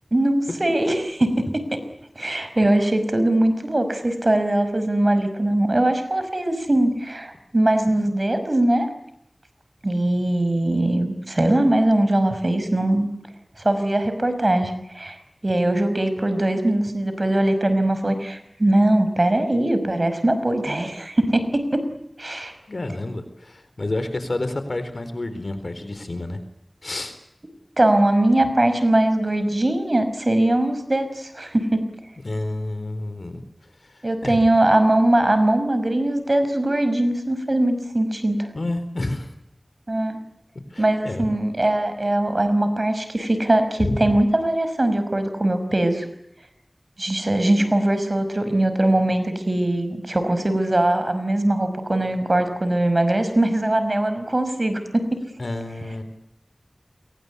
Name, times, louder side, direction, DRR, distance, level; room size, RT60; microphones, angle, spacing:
voice 1, 0.1-1.8 2.2-8.9 9.8-13.1 13.6-15.2 15.4-21.8 22.2-22.5 27.8-31.8 34.0-38.5 39.9-40.2 40.8-46.1 47.0-55.1, right 1 dB, 50° right, 10 dB, 5.4 m, -21 dB
voice 2, 22.7-26.4 26.8-27.1 32.2-33.4 33.7-34.5 38.5-39.3 40.7-41.3 43.8-44.1 55.4-56.0, left 2 dB, 75° left, 10 dB, 4.1 m, -29 dB
29.5 x 23.0 x 8.4 m, 0.83 s
wide cardioid pair, 50°, 0 cm